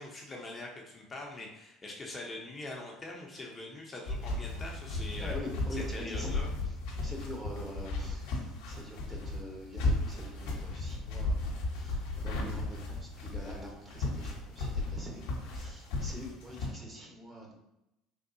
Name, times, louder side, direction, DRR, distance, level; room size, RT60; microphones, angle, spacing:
voice 1, 0.0-5.3 5.7-6.5, left 2 dB, 30° left, -1 dB, 0.6 m, -43 dB
sound 1, 4.1-16.7, left 2 dB, 70° left, 0.8 m, -35 dB
voice 2, 5.0-6.4 6.6-17.5, equal, 20° right, -1 dB, 1.0 m, -45 dB
3.5 x 2.3 x 2.7 m, 0.89 s
hypercardioid pair, 75°, 0 cm